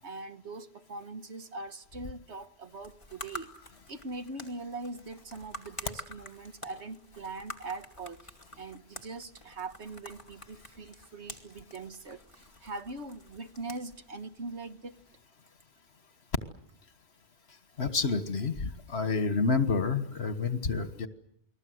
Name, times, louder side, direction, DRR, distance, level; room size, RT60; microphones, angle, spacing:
voice 1, 0.0-3.5 3.9-15.0, right 3 dB, 80° right, 9 dB, 1.7 m, -42 dB
sound 1, 2.7-15.2, left 1 dB, 25° left, 2.8 m, -49 dB
voice 2, 17.8-21.1, left 4 dB, 70° left, 10 dB, 1.9 m, -29 dB
29.0 x 21.0 x 7.9 m, 0.73 s
omnidirectional pair, 1.1 m